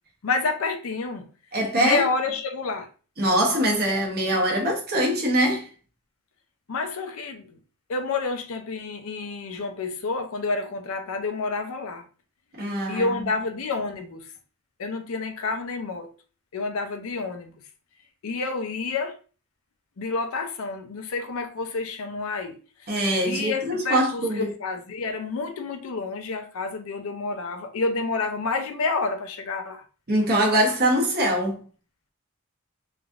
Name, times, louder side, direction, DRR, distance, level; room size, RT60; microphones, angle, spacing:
voice 1, 0.2-1.3 1.8-2.9 6.7-7.6 7.9-12.0 12.9-14.3 14.8-16.1 16.5-17.5 18.2-19.2 20.0-22.6 23.2-29.8, left 4 dB, 65° left, 0.5 m, -29 dB
voice 2, 1.5-2.1 3.2-5.7 12.6-13.3 22.9-24.5 30.1-31.6, right 1 dB, 45° right, 0.9 m, -23 dB
3.1 x 2.5 x 2.4 m
head